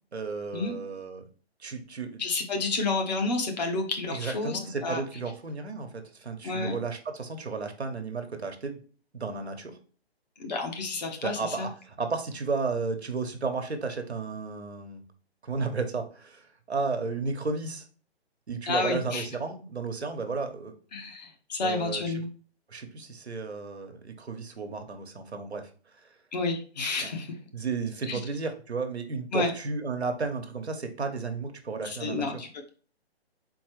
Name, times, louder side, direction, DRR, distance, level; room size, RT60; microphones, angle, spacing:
voice 1, 0.1-1.2 1.6-2.2 4.1-8.8 9.1-9.8 11.2-15.0 15.4-17.8 18.5-20.7 21.6-22.1 22.7-25.7 27.0-27.2 27.5-32.2, right 4 dB, 75° right, 5 dB, 1.1 m, -33 dB
voice 2, 2.2-5.0 6.4-6.7 10.4-11.7 18.7-19.3 20.9-22.3 26.3-27.3 28.1-28.2 29.3-29.5 31.8-32.7, left 3 dB, 40° left, 3 dB, 1.1 m, -30 dB
4.3 x 3.9 x 3.1 m, 0.41 s
figure-of-eight pair, 140°, 32 cm